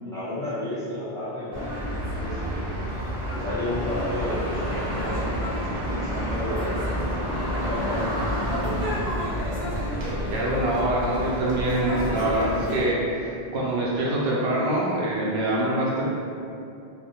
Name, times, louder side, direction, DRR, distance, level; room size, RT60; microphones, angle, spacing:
voice 1, 0.0-2.7 3.3-8.8 12.8-12.9, left 1 dB, 5° left, -12 dB, 0.7 m, -32 dB
sound 1, 1.5-12.8, equal, 50° right, 0.8 m, -29 dB
voice 2, 10.3-16.0, right 1 dB, 85° right, -6 dB, 0.9 m, -25 dB
2.6 x 2.1 x 2.8 m, 2.6 s
omnidirectional pair, 1.0 m